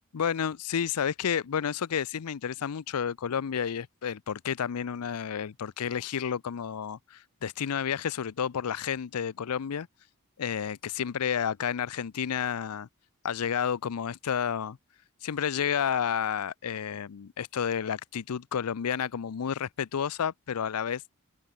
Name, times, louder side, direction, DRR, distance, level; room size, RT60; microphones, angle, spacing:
voice 1, 0.1-9.9 10.4-12.9 13.2-14.8 15.2-21.1, left 8 dB, 85° left, 0.5 m, -31 dB
head